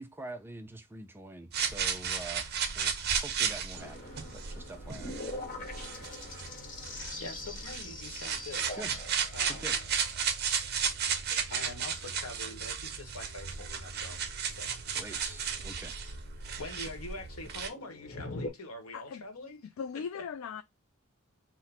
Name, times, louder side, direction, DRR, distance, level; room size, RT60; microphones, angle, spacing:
voice 1, 0.0-2.5 2.7-5.1 8.7-9.0 9.5-9.8 15.0-16.0, right 2 dB, 10° right, 0.4 m, -45 dB
sound 1, 1.5-17.7, right 7 dB, 50° right, 0.6 m, -34 dB
sound 2, 3.7-18.5, left 2 dB, 40° left, 1.0 m, -45 dB
voice 2, 7.2-8.8 9.3-9.8 11.5-14.8 15.1-15.3 15.9-16.1 16.6-20.3, left 2 dB, 85° left, 1.0 m, -45 dB
voice 3, 19.8-20.6, left 6 dB, 65° left, 0.3 m, -38 dB
4.0 x 2.1 x 4.1 m
head